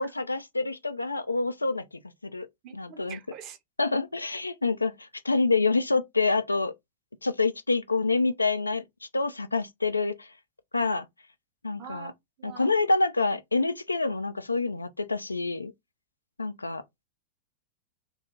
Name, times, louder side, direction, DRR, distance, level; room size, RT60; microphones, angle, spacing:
voice 1, 0.0-1.8 2.2-2.5 2.7-3.2 3.8-6.7 7.2-8.8 9.1-10.3 10.7-11.1 11.6-12.1 12.4-15.7 16.4-16.8, left 3 dB, 80° left, 0.3 m, -27 dB
voice 2, 2.6-3.6 11.8-12.7, right 9 dB, 35° right, 0.7 m, -45 dB
2.7 x 2.3 x 3.8 m
figure-of-eight pair, 90°, 0 cm